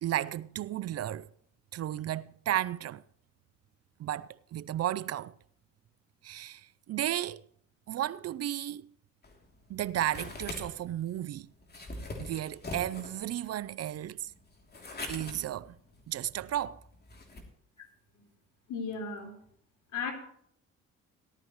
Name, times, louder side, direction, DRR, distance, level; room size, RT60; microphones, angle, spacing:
voice 1, 0.0-1.3 1.7-3.0 4.0-5.3 6.2-7.4 7.9-8.9 9.7-11.5 12.2-14.3 15.1-15.8 16.1-16.8, right 12 dB, 55° right, 0.5 m, -33 dB
sound 1, 9.2-17.4, left 2 dB, 35° left, 3.0 m, -44 dB
voice 2, 18.7-19.3 19.9-20.1, left 5 dB, 75° left, 3.7 m, -35 dB
17.5 x 12.5 x 3.1 m
cardioid pair, 90°, 30 cm